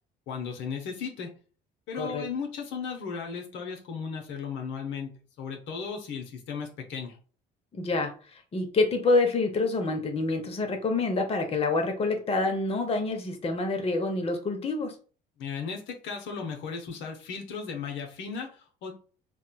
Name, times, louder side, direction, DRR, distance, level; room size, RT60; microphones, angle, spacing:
voice 1, 0.3-1.3 1.9-5.1 5.4-7.2 15.4-18.9, left 6 dB, 65° left, 2 dB, 0.7 m, -36 dB
voice 2, 7.7-15.0, left 3 dB, 30° left, 5 dB, 0.7 m, -27 dB
3.6 x 2.2 x 2.2 m, 0.39 s
supercardioid pair, 70°, 20 cm